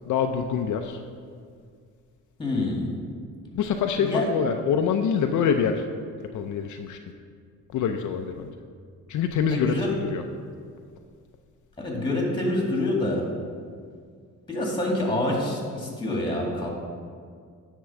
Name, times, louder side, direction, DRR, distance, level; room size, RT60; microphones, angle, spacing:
voice 1, 0.0-1.0 3.5-5.9 6.3-7.0 7.7-8.5 9.1-10.2, left 7 dB, 70° left, 5 dB, 0.5 m, -25 dB
voice 2, 2.4-2.9 4.0-4.3 9.5-9.9 11.8-13.2 14.5-16.7, left 2 dB, 15° left, -1 dB, 2.0 m, -26 dB
9.6 x 3.7 x 5.9 m, 2.1 s
cardioid pair, 105°, 31 cm